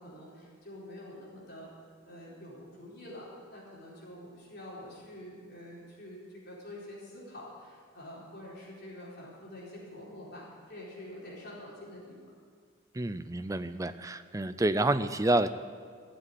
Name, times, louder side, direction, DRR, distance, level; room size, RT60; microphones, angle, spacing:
voice 1, 0.0-1.7 2.0-12.2, left 1 dB, 50° left, -6 dB, 4.3 m, -47 dB
voice 2, 12.9-15.5, right 2 dB, 15° right, 11 dB, 0.4 m, -28 dB
15.0 x 7.6 x 9.7 m, 2.1 s
head